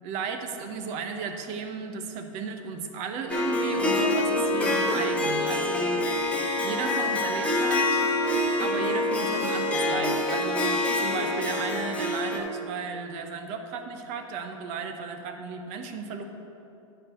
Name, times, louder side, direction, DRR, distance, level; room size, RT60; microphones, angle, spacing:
voice 1, 0.0-6.0 6.6-8.1 8.6-16.2, right 5 dB, 45° right, 6 dB, 0.9 m, -34 dB
Harp, 3.3-12.4, left 2 dB, 10° left, 1.1 m, -26 dB
9.6 x 4.6 x 6.4 m, 2.9 s
hypercardioid pair, 105°, 16 cm